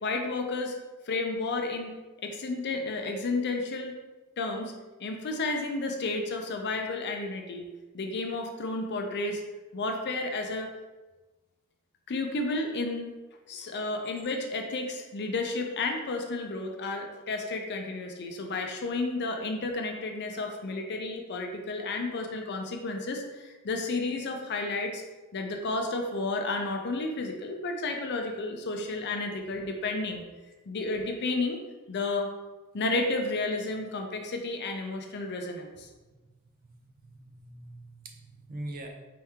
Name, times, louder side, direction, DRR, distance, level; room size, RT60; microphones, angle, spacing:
voice 1, 0.0-0.7 1.1-2.0 2.2-4.0 4.4-4.7 5.0-7.7 7.9-9.4 9.7-10.7 12.1-13.1 13.5-25.0 25.3-30.2 30.7-31.6 31.9-32.3 32.7-35.9, left 3 dB, 50° left, 3 dB, 0.5 m, -32 dB
voice 2, 36.4-38.9, right 1 dB, 40° right, 2 dB, 0.6 m, -43 dB
4.4 x 2.9 x 3.6 m, 1.2 s
head